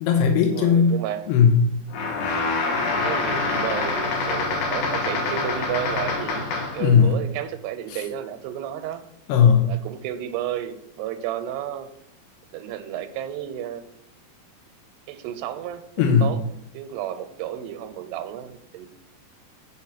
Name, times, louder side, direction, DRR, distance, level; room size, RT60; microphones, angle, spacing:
voice 1, 0.0-1.0 1.3-1.7 6.8-7.1 7.9-8.0 9.3-9.7 16.0-16.3, left 6 dB, 85° left, 4 dB, 2.9 m, -17 dB
voice 2, 0.5-1.3 2.9-6.4 6.7-9.0 9.7-11.9 12.5-13.9 15.1-16.4 16.7-18.9, right 11 dB, 90° right, 10 dB, 2.8 m, -32 dB
sound 1, 1.9-6.9, left 3 dB, 65° left, 2.7 m, -26 dB
9.3 x 4.5 x 5.7 m, 0.74 s
omnidirectional pair, 4.7 m